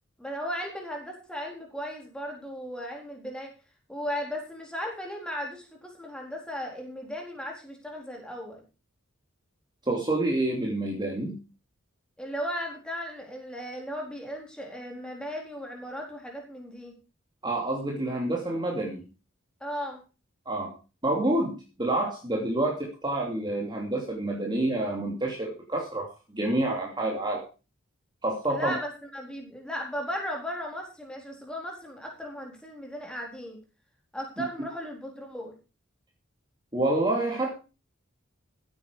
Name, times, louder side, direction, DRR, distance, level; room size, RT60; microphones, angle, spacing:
voice 1, 0.2-3.5 3.9-8.6 12.2-16.9 19.6-20.0 28.5-33.6 34.1-35.5, equal, 5° left, 0 dB, 4.0 m, -36 dB
voice 2, 9.8-11.4 17.4-19.0 20.5-20.7 21.0-27.4 28.2-28.8 36.7-37.5, right 2 dB, 20° right, -1 dB, 2.9 m, -28 dB
15.5 x 8.9 x 4.9 m, 0.32 s
head